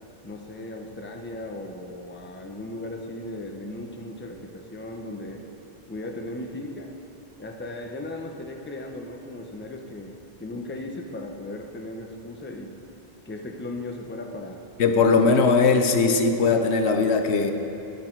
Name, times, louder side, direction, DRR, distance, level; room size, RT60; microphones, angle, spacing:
voice 1, 0.2-5.4 5.9-6.9 7.4-12.7 13.3-14.6, left 1 dB, 10° left, 2 dB, 0.7 m, -37 dB
voice 2, 14.8-17.5, left 4 dB, 85° left, 6 dB, 1.1 m, -19 dB
18.5 x 6.4 x 4.5 m, 2.8 s
omnidirectional pair, 1.1 m